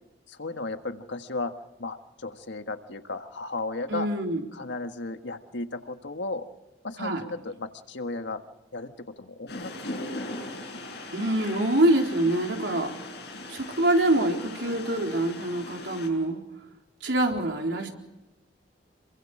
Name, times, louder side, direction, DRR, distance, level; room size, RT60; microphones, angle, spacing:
voice 1, 0.3-1.5 1.8-4.1 4.5-6.4 6.8-8.4 8.7-9.7 10.5-10.6, left 3 dB, 90° left, 7 dB, 1.6 m, -35 dB
voice 2, 3.9-4.4 7.0-7.2 11.1-12.9 13.5-16.4 17.0-17.9, right 1 dB, 85° right, 1 dB, 4.0 m, -25 dB
sound 1, 9.5-16.1, left 2 dB, 65° left, 7.8 m, -39 dB
27.5 x 23.5 x 5.0 m, 1.0 s
head